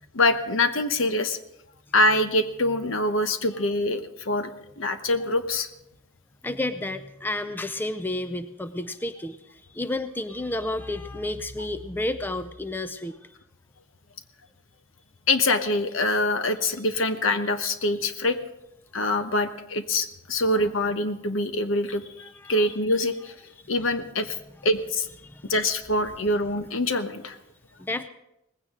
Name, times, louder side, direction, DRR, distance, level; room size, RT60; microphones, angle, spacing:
voice 1, 0.1-1.4 1.9-5.7 15.3-18.4 18.9-22.0 22.5-23.3 23.7-24.4 24.6-25.1 25.5-27.4, left 2 dB, 65° left, 9 dB, 1.1 m, -24 dB
voice 2, 6.4-13.4 22.2-22.6 25.2-25.5 27.8-28.1, left 1 dB, 10° left, 10 dB, 0.5 m, -31 dB
19.0 x 16.0 x 3.8 m, 0.85 s
head